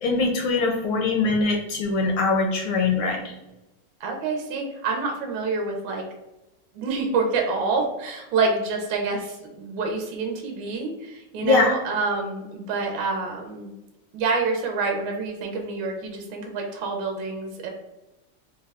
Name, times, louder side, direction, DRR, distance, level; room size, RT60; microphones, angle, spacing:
voice 1, 0.0-3.3 11.4-11.7, left 3 dB, 75° left, 2 dB, 1.1 m, -22 dB
voice 2, 4.0-6.0 6.8-13.7 14.1-17.7, right 4 dB, 75° right, 2 dB, 1.3 m, -27 dB
3.9 x 2.2 x 3.3 m, 0.98 s
omnidirectional pair, 2.4 m